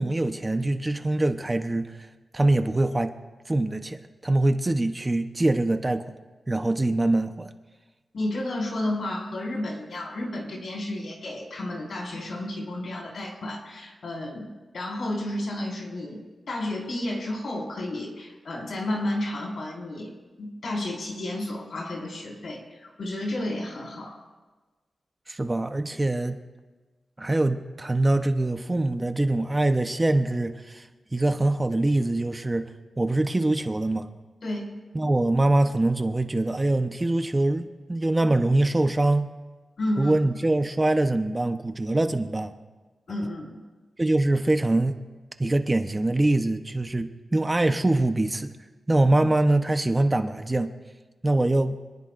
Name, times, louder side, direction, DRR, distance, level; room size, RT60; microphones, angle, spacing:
voice 1, 0.0-2.1 2.3-3.1 3.5-6.1 6.5-7.5 25.3-26.4 27.2-32.7 33.0-34.1 34.9-39.3 40.0-42.5 44.0-45.0 45.4-48.5 48.9-50.7 51.2-51.8, right 2 dB, 20° right, 7 dB, 0.9 m, -24 dB
voice 2, 8.1-24.2 34.4-34.7 39.8-40.1 43.1-43.5, left 1 dB, 75° left, -2 dB, 5.0 m, -32 dB
26.0 x 19.5 x 2.6 m, 1.3 s
wide cardioid pair, 95°, 0 cm